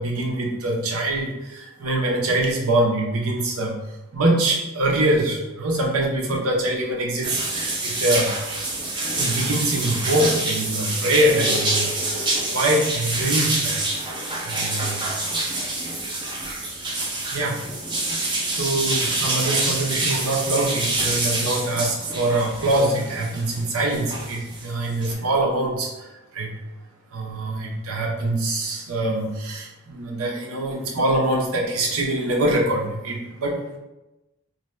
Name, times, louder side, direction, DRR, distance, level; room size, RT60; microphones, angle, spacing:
voice 1, 0.0-3.8 4.1-8.3 9.2-13.9 14.4-15.1 17.3-17.6 18.1-26.1 26.3-26.6 27.1-33.8, right 1 dB, 85° right, -1 dB, 0.6 m, -24 dB
sound 1, 7.2-25.1, right 2 dB, 20° right, 0.4 m, -26 dB
2.6 x 2.1 x 3.1 m, 0.99 s
head